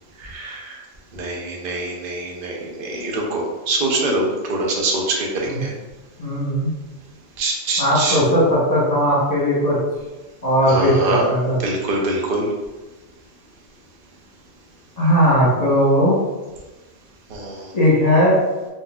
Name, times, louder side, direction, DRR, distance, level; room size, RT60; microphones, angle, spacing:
voice 1, 0.2-0.8 1.1-5.7 7.4-8.2 10.7-11.2 11.6-12.5 17.3-17.7, right 2 dB, 55° right, -1 dB, 0.8 m, -24 dB
voice 2, 6.2-6.7 7.8-9.8 10.4-11.6 15.0-16.2 17.7-18.4, equal, 35° left, -9 dB, 1.0 m, -17 dB
3.8 x 2.6 x 2.3 m, 1.1 s
omnidirectional pair, 1.2 m